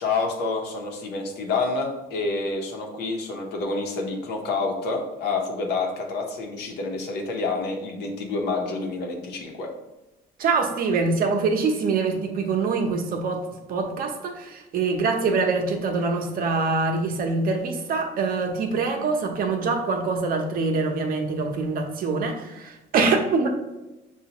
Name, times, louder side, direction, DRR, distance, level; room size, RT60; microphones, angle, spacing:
voice 1, 0.0-9.7, left 3 dB, 80° left, 1 dB, 0.9 m, -28 dB
voice 2, 10.4-23.5, right 4 dB, 60° right, 3 dB, 0.7 m, -24 dB
5.5 x 2.4 x 2.9 m, 1.0 s
cardioid pair, 110°, 17 cm